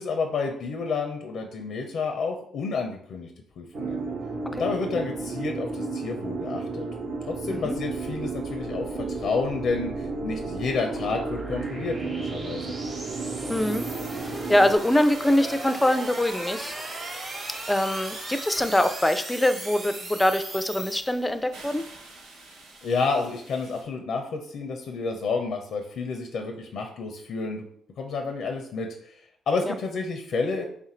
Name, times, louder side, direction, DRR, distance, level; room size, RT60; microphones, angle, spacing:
voice 1, 0.0-3.3 3.6-4.1 4.5-6.9 7.3-12.8 22.8-27.7 28.0-30.6, left 4 dB, 70° left, 4 dB, 0.5 m, -30 dB
sound 1, 3.7-14.8, right 3 dB, 60° right, 0.6 m, -33 dB
sound 2, 7.7-21.6, right 2 dB, 40° right, 0.9 m, -38 dB
voice 2, 13.5-13.9 14.2-16.7 17.7-21.8 29.7-29.8, left 1 dB, 10° left, 10 dB, 0.3 m, -24 dB
sound 3, 18.4-19.0 19.4-23.8, right 2 dB, 80° right, 0.9 m, -49 dB
3.4 x 2.5 x 4.2 m, 0.64 s
cardioid pair, 90°, 0 cm